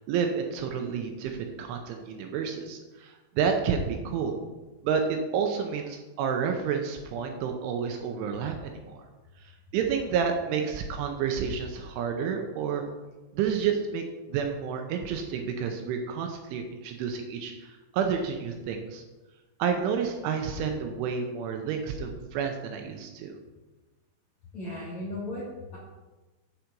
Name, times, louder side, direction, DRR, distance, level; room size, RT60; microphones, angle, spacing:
voice 1, 0.0-4.3 4.8-9.0 9.4-12.9 13.3-19.0 19.6-23.3, right 6 dB, 80° right, 4 dB, 3.0 m, -30 dB
voice 2, 24.5-25.8, left 1 dB, 65° left, -6 dB, 1.8 m, -36 dB
7.7 x 7.4 x 5.3 m, 1.2 s
omnidirectional pair, 5.9 m